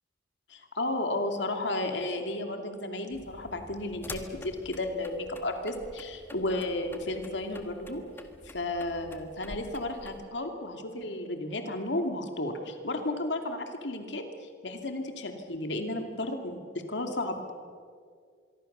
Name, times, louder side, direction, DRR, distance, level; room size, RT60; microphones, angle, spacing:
voice 1, 0.5-8.0 8.4-16.6 16.9-17.4, left 2 dB, 70° left, 5 dB, 2.6 m, -33 dB
sound 1, 3.1-10.2, left 1 dB, 10° left, 1.6 m, -47 dB
26.0 x 23.0 x 6.8 m, 2.1 s
head